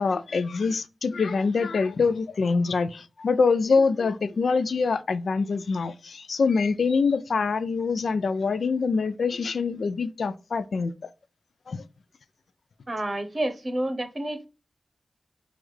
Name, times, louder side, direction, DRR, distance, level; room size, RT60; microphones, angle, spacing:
voice 1, 0.0-11.1 11.7-11.8, left 4 dB, 80° left, 0.3 m, -25 dB
voice 2, 12.9-14.5, right 1 dB, 40° right, 0.8 m, -29 dB
6.1 x 2.4 x 3.2 m
wide cardioid pair, 75°, 0 cm